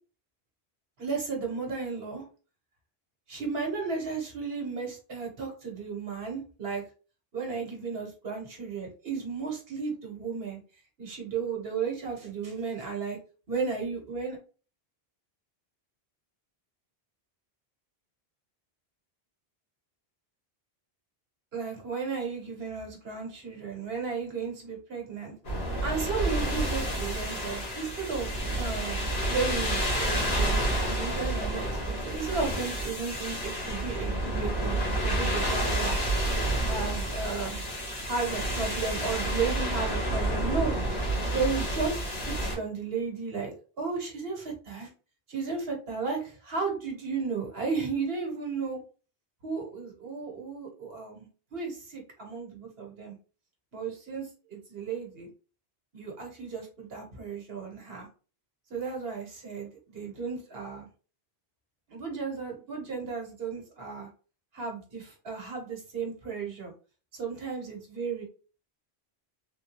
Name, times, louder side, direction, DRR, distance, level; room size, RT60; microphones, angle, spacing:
voice 1, 1.0-2.2 3.3-6.8 7.3-10.6 11.0-13.2 13.5-14.4 21.5-29.0 29.3-36.0 36.6-37.6 38.0-40.8 41.3-42.0 42.3-44.9 45.3-48.8 49.4-53.2 53.7-55.3 55.9-58.1 58.7-60.9 61.9-64.1 64.5-66.7 67.1-68.2, right 5 dB, 70° right, 1 dB, 1.3 m, -34 dB
sound 1, 25.4-42.6, right 1 dB, 75° left, 1.5 m, -29 dB
3.6 x 2.3 x 2.9 m, 0.36 s
omnidirectional pair, 1.1 m